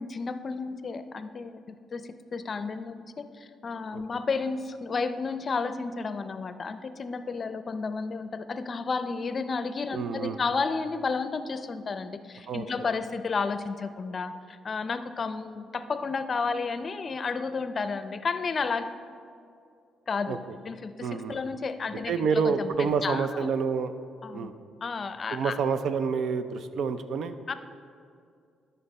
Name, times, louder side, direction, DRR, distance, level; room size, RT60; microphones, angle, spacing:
voice 1, 0.0-19.0 20.1-20.4 20.7-23.5 24.2-24.5 24.8-25.6 27.5-27.6, left 4 dB, 40° left, 11 dB, 0.5 m, -32 dB
voice 2, 9.9-10.4 12.5-12.7 20.3-20.4 21.0-21.4 22.1-23.9 24.3-24.5 25.3-27.3, right 5 dB, 70° right, 10 dB, 0.5 m, -28 dB
12.5 x 5.7 x 4.2 m, 2.3 s
cardioid pair, 90°, 0 cm